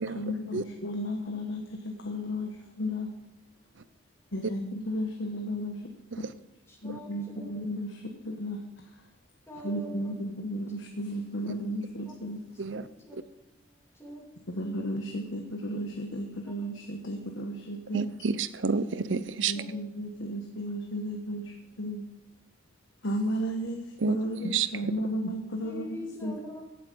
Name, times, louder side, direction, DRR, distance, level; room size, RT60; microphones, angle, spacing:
voice 1, 0.1-3.1 4.3-5.9 6.8-8.6 9.6-12.4 14.5-18.1 19.1-22.0 23.0-26.3, equal, 90° left, 1.3 m, -34 dB
voice 2, 6.7-7.5 9.5-10.2 11.4-11.5 12.0-12.1 12.7-14.3 16.4-16.5 19.5-19.8 25.6-26.6, equal, 15° left, 3.2 m, -44 dB
voice 3, 17.9-19.5 24.0-24.2 24.4-24.7, right 4 dB, 75° right, 0.7 m, -29 dB
16.0 x 8.1 x 5.4 m
head